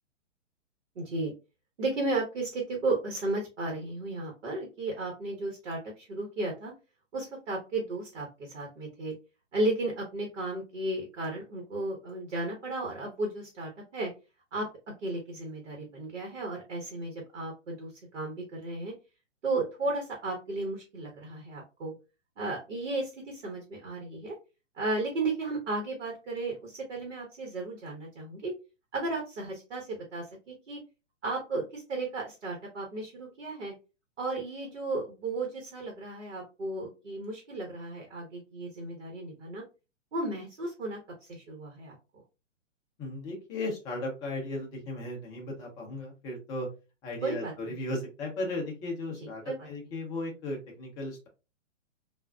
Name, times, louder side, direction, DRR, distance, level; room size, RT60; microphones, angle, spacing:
voice 1, 0.9-1.3 1.8-6.7 7.1-9.1 9.5-14.1 14.5-18.9 19.4-21.9 22.4-24.3 24.8-28.5 28.9-30.8 31.2-33.7 34.2-39.6 40.1-42.0 47.2-47.5 49.2-49.7, right 2 dB, 65° right, 1 dB, 1.2 m, -34 dB
voice 2, 43.0-46.7 47.0-49.4 49.7-51.3, left 1 dB, 10° left, 0 dB, 0.4 m, -36 dB
3.4 x 2.4 x 2.3 m, 0.29 s
hypercardioid pair, 125°, 37 cm